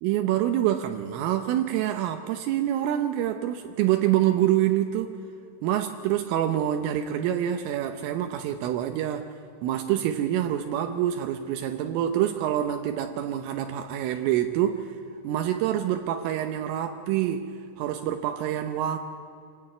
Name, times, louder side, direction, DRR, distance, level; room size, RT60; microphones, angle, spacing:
voice 1, 0.0-5.1 5.6-9.3 9.6-14.9 15.3-19.0, right 11 dB, 80° right, 6 dB, 3.4 m, -26 dB
26.0 x 16.5 x 9.8 m, 2.6 s
omnidirectional pair, 5.8 m